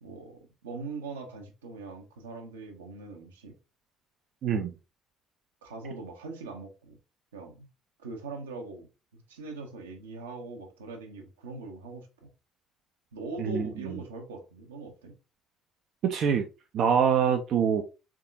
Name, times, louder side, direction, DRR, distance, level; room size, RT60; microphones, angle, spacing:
voice 1, 0.0-3.5 5.6-7.0 7.3-7.7 8.0-8.9 9.1-12.1 13.1-15.2, right 3 dB, 75° right, 0.8 m, -41 dB
voice 2, 4.4-4.7 13.4-14.0 16.0-16.4 16.7-17.8, right 7 dB, 50° right, 0.5 m, -25 dB
3.7 x 3.6 x 2.5 m
figure-of-eight pair, 55°, 0 cm